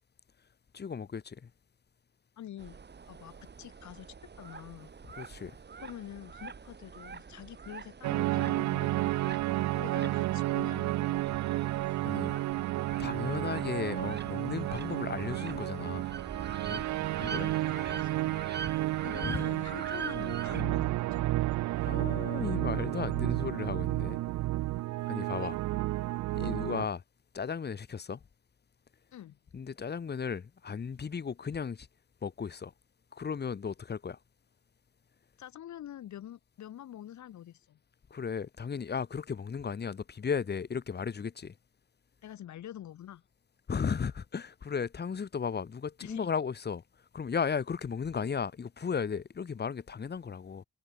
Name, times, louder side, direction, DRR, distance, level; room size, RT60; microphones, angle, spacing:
voice 1, 0.7-1.5 5.2-5.5 12.0-12.4 13.0-16.1 16.7-16.8 17.2-17.5 19.2-19.4 21.8-24.2 25.0-25.6 26.3-27.0 27.3-28.2 29.5-31.9 32.2-32.7 33.1-34.2 38.1-41.5 43.7-46.8 47.1-50.6, left 6 dB, 35° left, 1.4 m, -35 dB
voice 2, 2.4-2.8 3.1-4.9 5.8-9.2 9.7-11.2 17.2-18.4 19.0-21.2 25.4-25.5 26.4-26.6 29.1-29.4 35.4-37.8 42.2-43.2 46.0-46.3, left 11 dB, 70° left, 2.9 m, -46 dB
sound 1, 2.6-20.6, right 5 dB, 35° right, 3.1 m, -45 dB
sound 2, 8.0-26.9, right 17 dB, 70° right, 0.5 m, -31 dB
cardioid pair, 90°, 30 cm